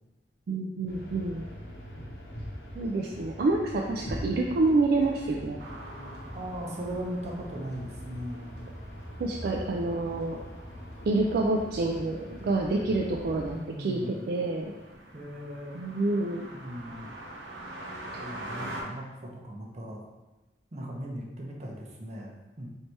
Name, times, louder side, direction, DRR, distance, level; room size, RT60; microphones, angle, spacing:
voice 1, 0.5-1.5 2.8-5.6 9.2-10.4 11.1-14.7 15.7-16.4 18.8-18.9, right 2 dB, 60° right, 0 dB, 0.3 m, -28 dB
sound 1, 0.9-13.6, equal, 65° left, 0.8 m, -42 dB
sound 2, 5.6-18.8, right 1 dB, 85° right, 0.8 m, -46 dB
voice 2, 6.3-8.6 13.4-14.2 15.1-15.8 16.5-17.1 18.2-20.0 20.7-22.3 22.6-22.7, equal, 40° right, -1 dB, 0.7 m, -38 dB
3.2 x 2.8 x 4.4 m, 1.1 s
head